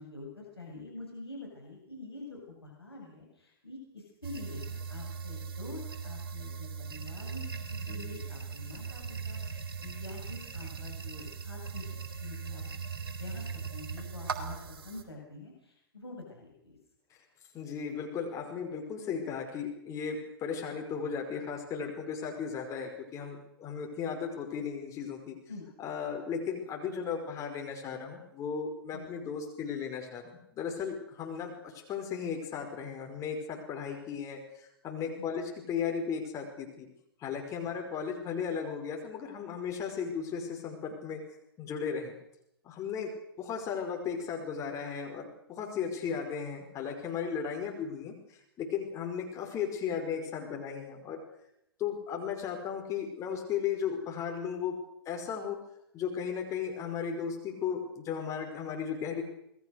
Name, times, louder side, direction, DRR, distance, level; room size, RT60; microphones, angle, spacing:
voice 1, 0.0-12.6 13.2-14.6 14.8-16.8 25.5-25.6 28.9-29.1 35.2-35.3 37.6-37.7, left 3 dB, 85° left, -1 dB, 7.7 m, -46 dB
sound 1, 4.2-15.0, right 5 dB, 60° right, 4.2 m, -39 dB
voice 2, 17.5-25.4 25.8-30.2 30.5-36.9 37.2-41.2 41.6-42.1 42.6-43.1 43.4-51.2 51.8-54.8 55.1-55.6 55.9-59.2, left 7 dB, 25° left, 2 dB, 5.3 m, -35 dB
27.5 x 20.0 x 6.6 m, 0.78 s
figure-of-eight pair, 110°, 13 cm